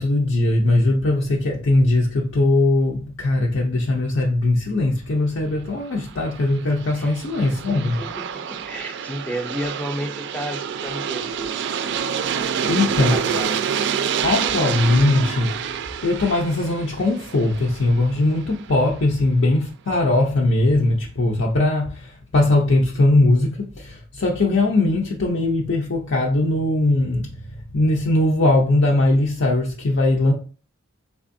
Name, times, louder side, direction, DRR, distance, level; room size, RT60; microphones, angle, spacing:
voice 1, 0.0-8.0 12.7-13.2 14.2-15.7 16.0-27.3 27.7-30.3, left 2 dB, 70° left, 0.6 m, -20 dB
Aircraft, 6.0-18.8, right 7 dB, 60° right, 0.3 m, -28 dB
voice 2, 7.5-11.6 12.6-13.7, equal, 5° left, 0.5 m, -32 dB
3.4 x 3.3 x 2.6 m
head